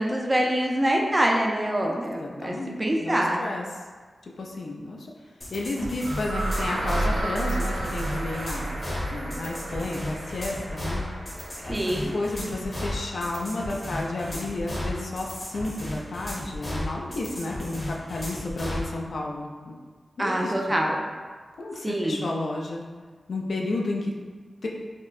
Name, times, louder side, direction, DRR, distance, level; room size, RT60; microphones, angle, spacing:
voice 1, 0.0-3.4 11.7-12.1 20.2-21.0 21.8-22.2, right 1 dB, 20° right, 0 dB, 0.4 m, -25 dB
voice 2, 2.2-3.6 4.2-5.1 5.5-8.7 9.1-11.2 11.6-11.8 12.1-19.8 20.2-20.8 21.6-22.8 23.3-24.1 24.6-24.7, left 2 dB, 75° left, -1 dB, 0.4 m, -32 dB
sound 1, 5.4-18.9, left 1 dB, 30° left, 0.8 m, -34 dB
sound 2, 6.0-13.9, right 2 dB, 80° right, 0.5 m, -33 dB
4.3 x 2.1 x 2.4 m, 1.5 s
wide cardioid pair, 110°, 0 cm